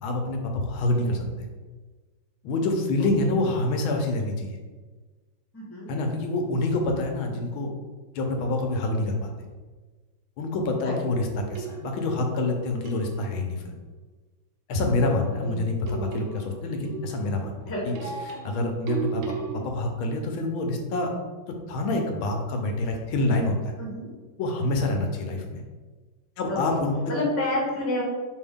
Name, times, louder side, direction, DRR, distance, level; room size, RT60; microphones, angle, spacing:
voice 1, 0.0-1.3 2.4-4.6 5.9-7.7 8.1-9.3 10.4-13.7 14.7-17.6 17.9-18.0 18.3-21.1 21.7-23.7 24.4-25.6 26.4-26.9, left 2 dB, 85° left, 3 dB, 1.5 m, -27 dB
voice 2, 5.5-5.9 10.8-11.0 14.8-14.9 15.4-15.5 17.7-18.0 23.8-24.1 26.5-26.6 27.1-28.0, left 1 dB, 10° left, -5 dB, 0.8 m, -29 dB
sound 1, 11.0-13.5 15.1-19.6, right 6 dB, 80° right, 1.4 m, -36 dB
5.2 x 2.7 x 3.5 m, 1.3 s
omnidirectional pair, 2.2 m